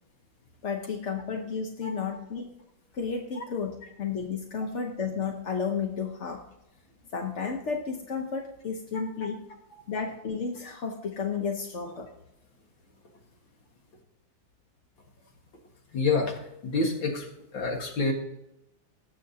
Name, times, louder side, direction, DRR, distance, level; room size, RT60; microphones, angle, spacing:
voice 1, 0.6-2.5 2.9-6.4 7.1-9.4 9.9-12.1, left 5 dB, 50° left, 2 dB, 0.9 m, -32 dB
voice 2, 1.8-2.2 8.9-9.0 15.9-17.3 17.5-18.1, left 3 dB, 70° left, 2 dB, 2.5 m, -28 dB
18.5 x 7.1 x 2.8 m, 0.86 s
omnidirectional pair, 2.2 m